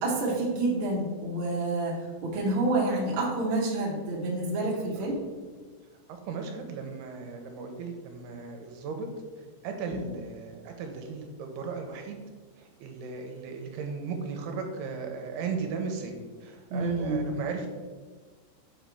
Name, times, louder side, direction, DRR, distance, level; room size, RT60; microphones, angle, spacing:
voice 1, 0.0-5.1 9.9-10.0 16.7-17.3, right 2 dB, 50° right, -5 dB, 1.6 m, -28 dB
voice 2, 6.1-9.1 9.4-12.2 12.6-16.1 16.4-17.7, right 5 dB, 85° right, 3 dB, 2.6 m, -36 dB
7.3 x 5.1 x 3.4 m, 1.4 s
omnidirectional pair, 4.7 m